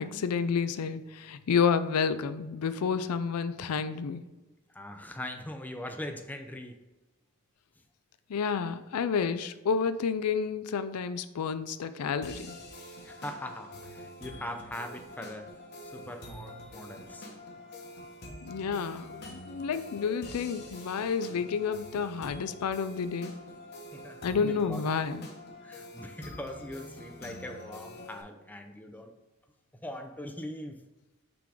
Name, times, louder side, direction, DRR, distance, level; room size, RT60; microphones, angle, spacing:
voice 1, 0.0-4.2 8.3-12.6 18.4-23.3 24.2-25.3, left 6 dB, 85° left, 12 dB, 0.4 m, -30 dB
voice 2, 4.7-6.8 13.0-15.5 15.8-17.3 23.9-24.9 25.6-29.1 29.8-30.8, left 1 dB, 10° left, 5 dB, 0.4 m, -41 dB
sound 1, 12.2-28.2, left 1 dB, 50° left, 1.1 m, -46 dB
5.8 x 3.8 x 4.8 m, 1.1 s
head